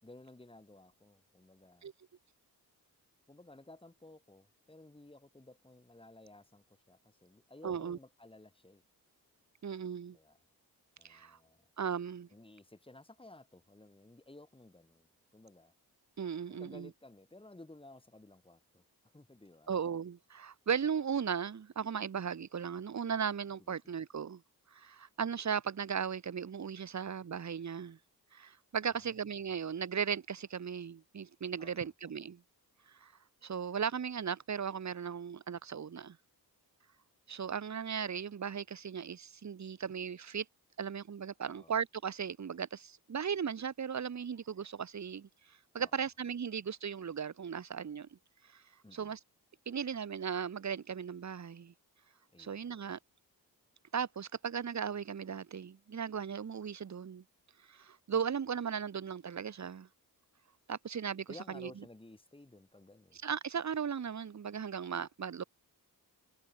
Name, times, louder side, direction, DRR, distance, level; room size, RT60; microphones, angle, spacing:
voice 1, 0.0-1.9 3.3-8.8 10.1-10.4 11.0-11.7 12.3-15.7 16.5-18.8 19.1-19.7 23.6-24.0 28.8-29.1 31.6-31.9 41.4-41.7 45.8-46.1 48.8-49.1 52.3-52.9 61.3-63.2, left 2 dB, 15° left, 5.7 m, -56 dB
voice 2, 7.6-8.0 9.6-10.2 11.0-11.4 11.8-12.3 16.2-16.9 19.7-24.4 24.7-28.0 28.3-32.4 32.9-33.1 33.4-36.2 37.3-40.4 40.8-48.1 48.5-48.6 48.9-49.2 49.7-51.7 52.4-53.0 53.9-57.2 57.7-59.9 60.7-61.7 63.2-65.4, right 7 dB, 45° right, 1.4 m, -37 dB
wide cardioid pair, 105°, 38 cm